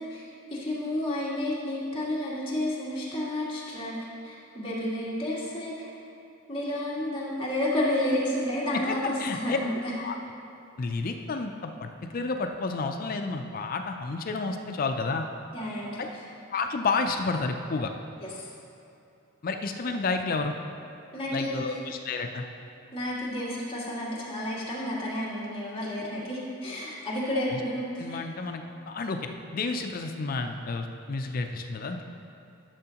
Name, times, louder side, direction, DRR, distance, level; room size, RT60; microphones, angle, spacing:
voice 1, 0.1-4.0 4.2-5.9 6.5-9.9 15.5-16.2 18.2-18.5 21.1-21.8 22.9-28.2, left 1 dB, 25° left, -8 dB, 2.1 m, -31 dB
voice 2, 9.2-9.6 10.0-10.1 10.8-15.2 16.0-16.1 16.5-17.9 19.4-20.5 21.3-22.4 28.0-29.2 29.5-32.0, left 3 dB, 45° left, 5 dB, 0.4 m, -30 dB
12.0 x 6.9 x 2.9 m, 2.8 s
head